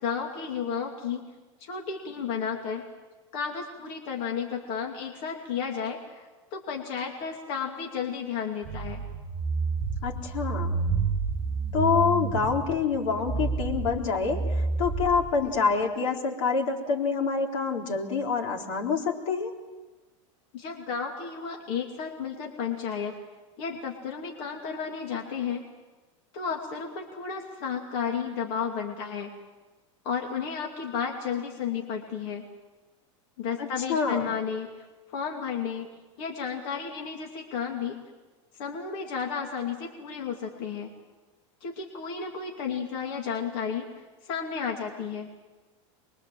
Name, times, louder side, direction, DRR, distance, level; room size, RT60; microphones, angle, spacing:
voice 1, 0.0-1.3 1.6-2.8 3.3-9.0 20.5-23.1 23.6-25.7 26.3-29.3 30.0-32.4 33.4-34.9 35.1-35.9 36.2-38.0 38.6-40.9 41.6-43.9 44.2-45.3, left 6 dB, 50° left, 1 dB, 2.6 m, -32 dB
sound 1, 8.6-15.5, right 4 dB, 10° right, 4.8 m, -30 dB
voice 2, 10.0-10.8 11.7-19.5 33.6-34.3, left 5 dB, 75° left, 2 dB, 3.9 m, -27 dB
24.5 x 23.0 x 7.6 m, 1.2 s
supercardioid pair, 165°, 16 cm